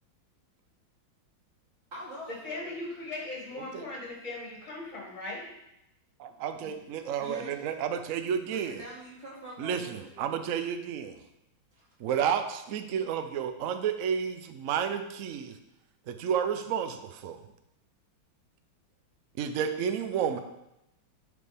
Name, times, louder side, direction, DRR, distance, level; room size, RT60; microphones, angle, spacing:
voice 1, 1.9-2.8 6.3-6.7 7.2-7.7 8.5-10.4 11.7-11.8, equal, 35° right, -6 dB, 2.5 m, -45 dB
voice 2, 2.4-5.5, left 2 dB, 40° left, -4 dB, 2.4 m, -38 dB
voice 3, 6.2-8.7 9.6-11.2 12.0-15.5 16.1-17.4 19.4-20.4, right 8 dB, 80° right, 8 dB, 0.7 m, -31 dB
11.0 x 5.0 x 3.5 m, 0.86 s
omnidirectional pair, 2.2 m